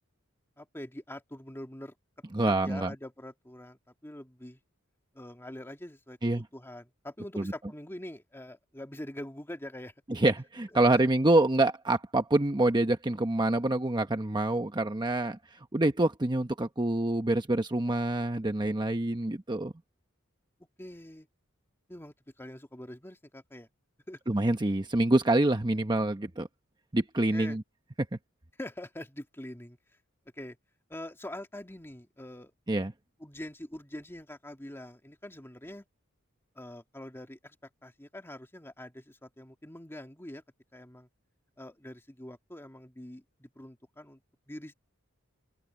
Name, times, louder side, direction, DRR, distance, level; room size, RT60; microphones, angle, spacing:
voice 1, 0.6-1.9 2.5-4.6 5.1-9.9 10.7-10.8 20.8-21.3 21.9-23.7 24.1-24.2 27.3-27.6 28.6-29.8 30.4-30.6 30.9-32.5 33.2-35.8 36.6-37.6 37.8-40.4 40.7-41.1 41.6-44.2 44.5-44.7, left 1 dB, 10° left, 2.2 m, -44 dB
voice 2, 2.3-2.9 6.2-6.4 7.3-7.5 10.1-19.7 24.3-26.5 26.9-27.6 32.7-32.9, right 2 dB, 20° right, 0.9 m, -26 dB
open air
head